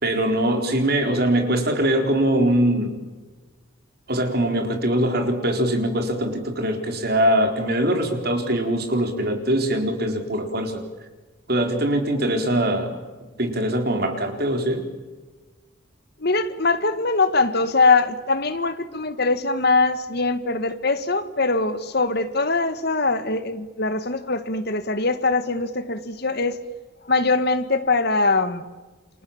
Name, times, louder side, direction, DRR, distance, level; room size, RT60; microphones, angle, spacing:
voice 1, 0.0-3.0 4.1-10.8 11.5-12.9 13.4-14.8, right 1 dB, 50° right, 4.3 m, -22 dB
voice 2, 16.2-26.6 27.1-28.6, left 3 dB, 55° left, 1.8 m, -22 dB
29.5 x 27.0 x 7.3 m
head